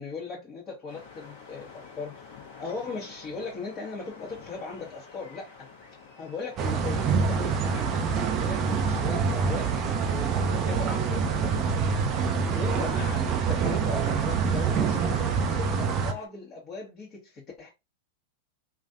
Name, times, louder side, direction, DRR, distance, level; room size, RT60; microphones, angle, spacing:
voice 1, 0.0-5.7 6.2-8.0 8.3-9.7 10.0-12.2 12.5-17.7, left 4 dB, 35° left, 1.2 m, -38 dB
sound 1, 0.9-16.3, left 5 dB, 55° left, 1.1 m, -47 dB
sound 2, 6.6-16.1, right 6 dB, 40° right, 0.5 m, -26 dB
3.1 x 2.6 x 2.5 m
hypercardioid pair, 100°, 0 cm